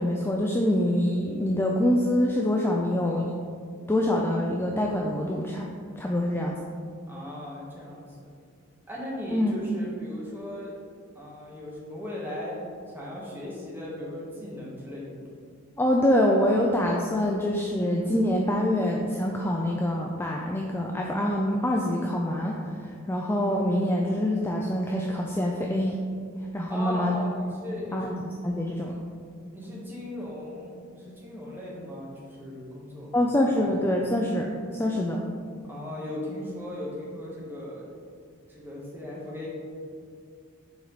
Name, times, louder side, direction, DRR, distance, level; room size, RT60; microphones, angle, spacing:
voice 1, 0.0-3.3 3.9-5.7 6.0-6.6 9.3-9.5 15.8-26.0 26.5-27.2 27.9-28.1 28.4-28.9 33.1-35.2, left 1 dB, 10° left, -1 dB, 0.4 m, -25 dB
voice 2, 7.1-8.3 8.9-10.7 11.1-12.6 12.9-15.1 26.7-28.1 29.5-33.1 35.7-37.8 38.5-39.5, left 1 dB, 10° right, -6 dB, 1.5 m, -37 dB
7.1 x 4.7 x 4.0 m, 2.2 s
head